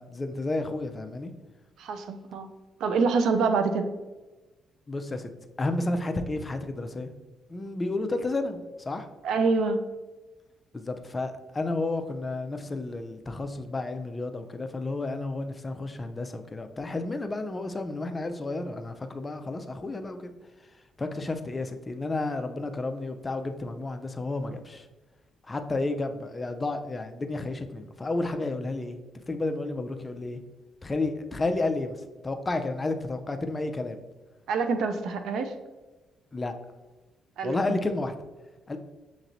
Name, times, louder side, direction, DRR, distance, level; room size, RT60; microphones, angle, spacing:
voice 1, 0.0-1.3 4.9-5.3 5.6-7.1 7.5-9.1 10.7-20.3 21.0-24.9 25.5-29.0 29.3-30.4 30.8-34.0 36.3-36.5 37.4-38.1 38.7-38.8, left 2 dB, 25° left, 7 dB, 0.4 m, -31 dB
voice 2, 1.8-2.5 2.8-3.9 9.2-9.8 34.5-35.5 37.4-37.8, right 4 dB, 80° right, 8 dB, 0.4 m, -26 dB
6.5 x 3.0 x 2.6 m, 1.2 s
cardioid pair, 90°, 0 cm